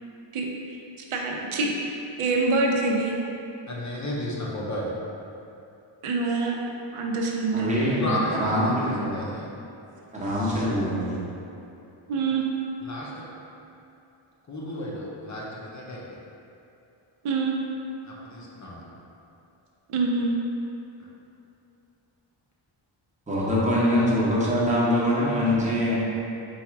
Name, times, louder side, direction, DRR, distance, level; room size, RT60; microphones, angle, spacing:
voice 1, 0.3-0.8 1.1-3.1 6.0-6.6 6.9-7.9 10.4-10.5 12.1-12.5 17.2-17.6 19.9-20.3, right 3 dB, 80° right, -1 dB, 0.7 m, -26 dB
voice 2, 3.7-4.9 8.0-9.5 12.8-13.2 14.5-16.2 18.0-18.8 21.0-21.1, left 1 dB, 35° left, -5 dB, 0.5 m, -33 dB
voice 3, 7.5-8.0 8.3-9.2 10.1-11.2 23.3-26.0, equal, 15° right, -8 dB, 0.8 m, -24 dB
4.2 x 2.4 x 4.6 m, 2.7 s
wide cardioid pair, 175°, 49 cm